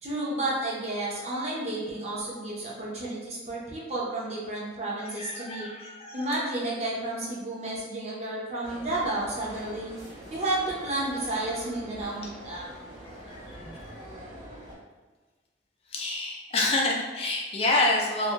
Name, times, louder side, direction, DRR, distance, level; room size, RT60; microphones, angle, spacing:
voice 1, 0.0-5.7 6.1-9.9 10.3-12.7 13.6-13.7, right 2 dB, 35° right, -5 dB, 0.7 m, -31 dB
voice 2, 5.0-6.3 13.3-13.9 15.9-18.3, left 2 dB, 30° left, -2 dB, 0.4 m, -28 dB
sound 1, 8.6-14.8, right 1 dB, 60° right, 1.3 m, -44 dB
2.6 x 2.5 x 2.8 m, 1.3 s
head